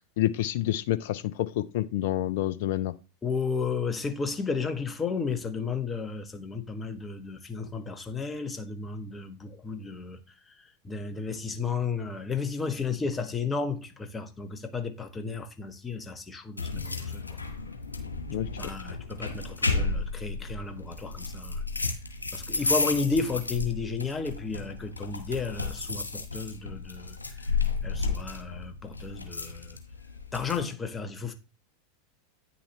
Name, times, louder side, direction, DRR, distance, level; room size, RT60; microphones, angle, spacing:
voice 1, 0.2-2.9 18.3-18.5, left 13 dB, 60° left, 0.6 m, -28 dB
voice 2, 3.2-10.2 10.5-17.4 18.6-21.6 22.3-27.6 27.8-29.8 30.3-31.3, left 5 dB, 20° left, 1.4 m, -33 dB
sound 1, 16.6-30.6, left 3 dB, 90° left, 1.7 m, -33 dB
9.6 x 7.1 x 3.2 m
figure-of-eight pair, 85°, 0 cm